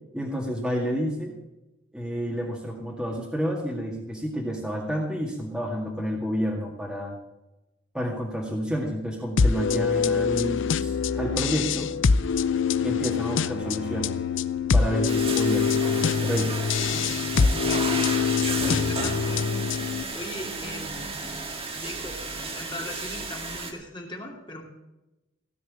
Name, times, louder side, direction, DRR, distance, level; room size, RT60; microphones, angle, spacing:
voice 1, 0.1-1.3 1.9-7.1 7.9-11.9 12.8-14.2 14.7-16.5, equal, 5° right, -3 dB, 2.0 m, -30 dB
sound 1, 9.4-20.0, left 6 dB, 70° left, 0.5 m, -24 dB
sound 2, 15.1-23.7, right 3 dB, 30° right, 1.8 m, -32 dB
voice 2, 17.7-19.5 20.1-21.2 21.7-24.6, left 1 dB, 25° left, 0 dB, 2.4 m, -39 dB
17.0 x 6.2 x 8.7 m, 0.97 s
head